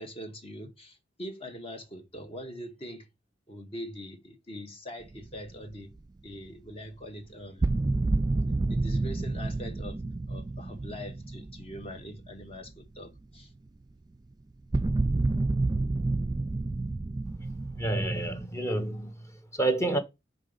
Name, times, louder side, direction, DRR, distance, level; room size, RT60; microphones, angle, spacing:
voice 1, 0.0-3.1 3.5-5.9 6.2-7.7 8.7-10.0 10.3-13.5, equal, 30° left, 1.1 m, -42 dB
sound 1, 5.1-6.0 7.6-12.7 13.0-13.2 14.7-18.5, right 2 dB, 20° right, 0.4 m, -29 dB
voice 2, 17.7-20.0, right 2 dB, 15° left, 1.0 m, -29 dB
5.5 x 3.9 x 5.2 m
head